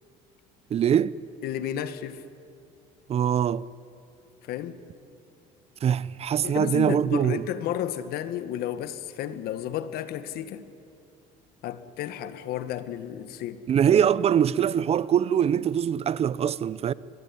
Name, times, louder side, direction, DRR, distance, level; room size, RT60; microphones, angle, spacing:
voice 1, 0.7-1.2 3.1-3.6 5.8-7.4 13.7-16.9, right 9 dB, 35° right, 0.6 m, -23 dB
voice 2, 1.4-2.2 4.5-4.8 6.4-10.6 11.6-13.6, left 11 dB, 65° left, 1.6 m, -32 dB
23.5 x 22.5 x 9.9 m
cardioid pair, 115°, 17 cm